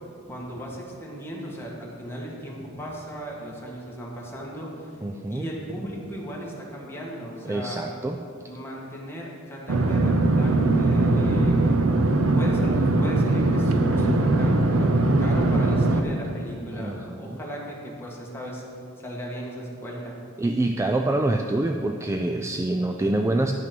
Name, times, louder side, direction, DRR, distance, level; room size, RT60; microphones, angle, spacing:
voice 1, 0.3-5.0 5.3-7.8 8.5-11.8 12.3-14.9 15.2-18.6 19.0-20.2, equal, 10° left, -3 dB, 1.7 m, -36 dB
voice 2, 5.0-5.5 7.5-8.2 16.7-17.4 20.4-23.5, right 2 dB, 15° right, 4 dB, 0.3 m, -26 dB
sound 1, 9.7-16.0, right 2 dB, 85° right, 0.7 m, -21 dB
10.5 x 6.0 x 6.0 m, 2.5 s
head